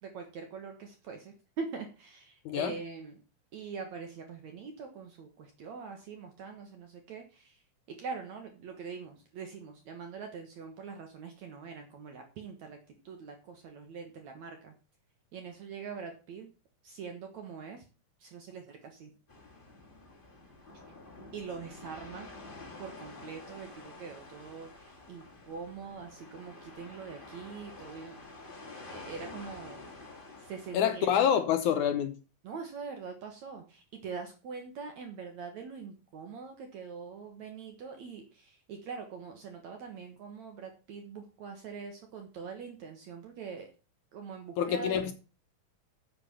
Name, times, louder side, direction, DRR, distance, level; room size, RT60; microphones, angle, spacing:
voice 1, 0.0-3.2 3.5-7.6 7.9-12.8 13.0-14.7 15.3-16.5 16.8-17.8 18.2-19.1 21.3-22.3 22.8-28.2 28.9-29.8 30.4-31.1 32.4-43.7 44.1-45.0, right 5 dB, 60° right, 2.4 m, -43 dB
sound 1, 19.3-31.0, left 2 dB, 15° left, 2.1 m, -49 dB
voice 2, 30.7-32.2 44.6-45.1, left 9 dB, 70° left, 2.0 m, -27 dB
8.0 x 7.5 x 6.9 m
omnidirectional pair, 4.2 m